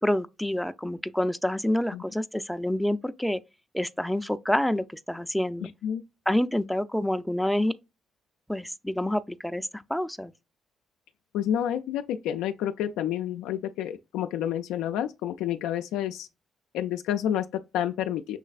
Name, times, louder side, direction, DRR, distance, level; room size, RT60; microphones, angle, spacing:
voice 1, 0.0-3.4 3.7-5.7 6.3-7.7 8.5-10.3, left 1 dB, 5° left, 0.4 m, -27 dB
voice 2, 5.6-6.0 11.3-16.3 16.7-18.4, left 10 dB, 85° left, 0.3 m, -29 dB
6.5 x 3.2 x 2.3 m
supercardioid pair, 70°, 0 cm